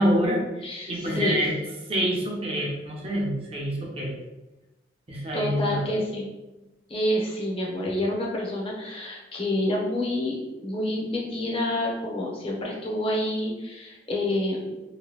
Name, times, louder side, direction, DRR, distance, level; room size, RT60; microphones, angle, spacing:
voice 1, 0.0-1.5 1.9-4.2 5.1-5.9, equal, 35° right, -3 dB, 0.7 m, -26 dB
voice 2, 0.6-1.4 5.3-6.3 6.9-14.9, left 1 dB, 30° left, -4 dB, 0.7 m, -28 dB
2.9 x 2.2 x 3.1 m, 1.0 s
head